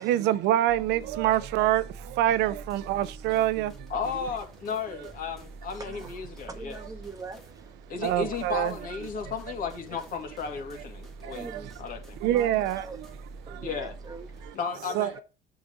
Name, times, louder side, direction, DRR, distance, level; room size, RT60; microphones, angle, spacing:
voice 1, 0.0-3.9 8.0-8.7 11.2-11.6 12.2-13.1 13.5-13.8 14.4-14.5 14.9-15.2, right 13 dB, 85° right, 0.6 m, -26 dB
sound 1, 0.7-14.5, right 2 dB, ahead, 1.9 m, -46 dB
voice 2, 3.9-6.8 7.9-11.5 11.8-12.2 13.6-13.9 14.5-15.2, left 6 dB, 55° left, 2.3 m, -34 dB
voice 3, 5.7-8.1 9.9-10.1 11.2-11.8 12.3-13.0 13.5-14.6 14.9-15.1, right 3 dB, 20° right, 1.5 m, -43 dB
7.9 x 4.9 x 5.3 m
cardioid pair, 110°, 17 cm